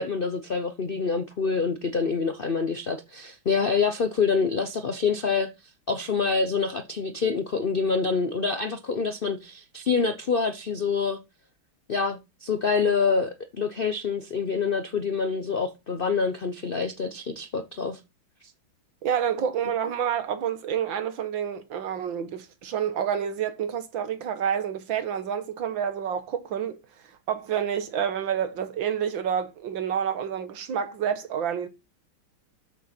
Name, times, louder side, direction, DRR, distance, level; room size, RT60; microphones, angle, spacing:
voice 1, 0.0-5.5 5.9-11.2 11.9-18.0, left 5 dB, 75° left, 0.5 m, -26 dB
voice 2, 19.0-26.8 27.3-31.7, right 8 dB, 70° right, 1.9 m, -28 dB
12.5 x 6.5 x 4.4 m
omnidirectional pair, 2.2 m